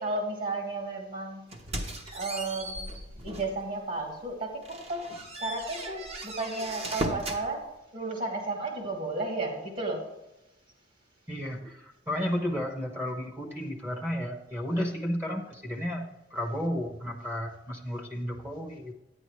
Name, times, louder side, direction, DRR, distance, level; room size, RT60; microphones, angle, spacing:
voice 1, 0.0-1.5 2.1-2.9 3.2-5.1 5.4-7.7 7.9-10.1, right 2 dB, 50° right, 1 dB, 2.5 m, -33 dB
sound 1, 1.5-3.6 4.1-4.2 4.6-7.4, right 1 dB, 35° right, 1.1 m, -37 dB
voice 2, 11.3-18.9, equal, 10° right, 3 dB, 1.0 m, -33 dB
9.8 x 9.8 x 3.1 m, 0.95 s
head